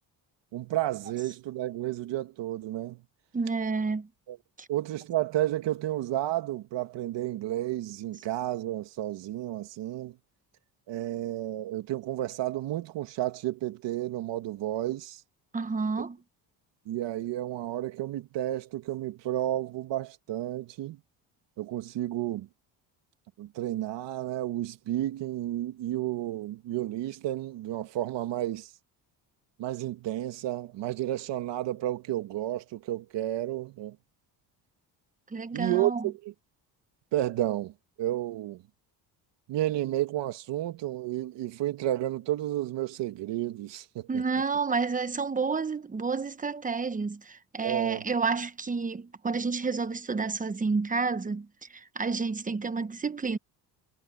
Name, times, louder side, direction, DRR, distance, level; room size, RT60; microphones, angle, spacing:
voice 1, 0.5-3.0 4.3-4.4 4.7-10.2 10.9-15.2 16.9-21.0 21.6-22.5 23.4-28.7 29.6-34.0 35.5-36.3 37.1-37.7 38.0-38.6 39.5-44.2 47.6-48.0, right 14 dB, 75° right, 2.4 m, -31 dB
voice 2, 3.3-4.1 4.6-4.7 15.5-16.2 35.3-36.0 44.1-53.4, right 4 dB, 20° right, 1.0 m, -30 dB
cardioid pair, 125°, 43 cm